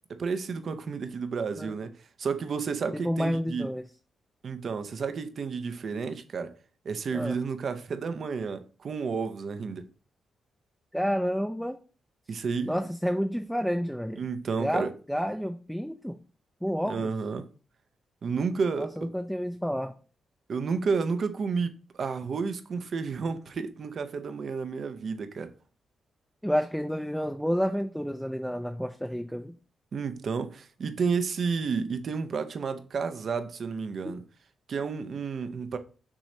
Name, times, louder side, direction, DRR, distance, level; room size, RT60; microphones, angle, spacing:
voice 1, 0.1-1.9 2.2-3.7 4.4-6.5 6.8-9.9 12.3-12.8 14.2-14.9 16.8-17.5 18.2-19.1 20.5-25.5 29.9-34.2 34.7-35.8, right 5 dB, 60° right, 0.6 m, -31 dB
voice 2, 3.0-3.9 7.1-7.4 10.9-11.8 12.3-12.4 12.7-14.2 14.6-16.2 16.6-17.1 18.8-19.9 26.4-29.5 34.0-34.1, equal, ahead, 0.4 m, -30 dB
6.2 x 3.1 x 2.7 m
cardioid pair, 70°, 0 cm